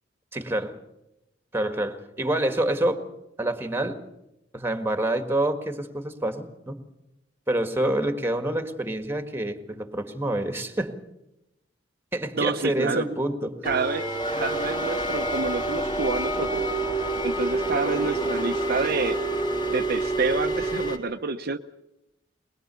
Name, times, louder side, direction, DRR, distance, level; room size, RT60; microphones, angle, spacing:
voice 1, 0.3-0.7 1.5-3.0 3.4-4.0 4.5-6.8 7.5-10.9 12.1-13.5, right 1 dB, 10° right, 7 dB, 1.7 m, -27 dB
voice 2, 12.4-13.1 13.6-16.7 17.2-19.2 19.7-21.6, right 4 dB, 55° right, 6 dB, 0.8 m, -28 dB
sound 1, 13.6-21.0, right 2 dB, 25° left, 3.4 m, -27 dB
22.0 x 21.5 x 6.9 m, 0.89 s
head